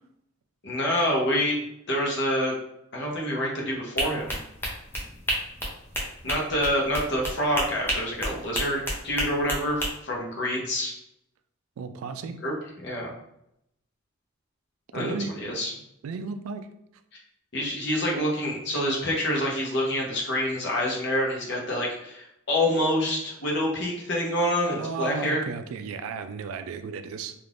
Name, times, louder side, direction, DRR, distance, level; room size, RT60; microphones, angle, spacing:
voice 1, 0.6-1.6 1.9-2.5 2.9-4.4 6.2-10.9 12.4-13.1 14.9-15.7 17.5-25.4, equal, 55° left, -2 dB, 0.8 m, -27 dB
sound 1, 4.0-9.9, equal, 10° left, 0.5 m, -30 dB
voice 2, 11.8-12.4 14.9-15.6 16.0-16.7 24.8-27.3, right 5 dB, 80° right, 10 dB, 0.3 m, -34 dB
2.5 x 2.4 x 3.3 m, 0.78 s
head